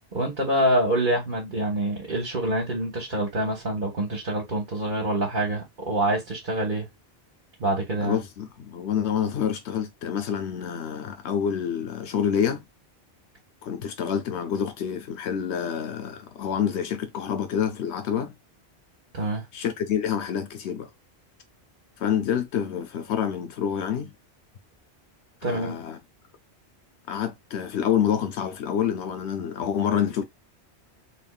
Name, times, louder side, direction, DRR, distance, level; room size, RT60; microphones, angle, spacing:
voice 1, 0.1-6.9 7.6-8.2 19.1-19.5 25.4-25.8, right 1 dB, 50° right, 1.5 m, -26 dB
voice 2, 8.0-12.6 13.6-18.3 19.5-20.9 22.0-24.1 25.5-26.0 27.1-30.2, left 8 dB, 80° left, 0.9 m, -27 dB
3.9 x 3.6 x 2.3 m
omnidirectional pair, 1.1 m